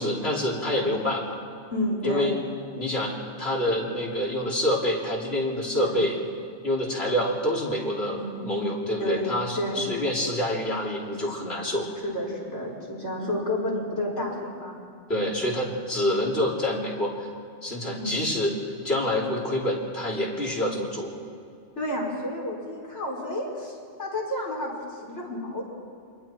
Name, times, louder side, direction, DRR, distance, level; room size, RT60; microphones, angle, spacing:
voice 1, 0.0-1.4 2.0-2.3 2.8-6.2 6.6-11.9 15.1-17.3 17.6-18.5 18.8-21.1, left 1 dB, 65° left, -3 dB, 3.7 m, -27 dB
voice 2, 1.7-2.4 5.8-6.0 8.2-8.4 9.0-9.9 12.0-14.8 17.9-18.2 21.8-25.6, left 1 dB, 80° left, -4 dB, 5.3 m, -30 dB
29.0 x 24.0 x 4.6 m, 2.5 s
omnidirectional pair, 1.2 m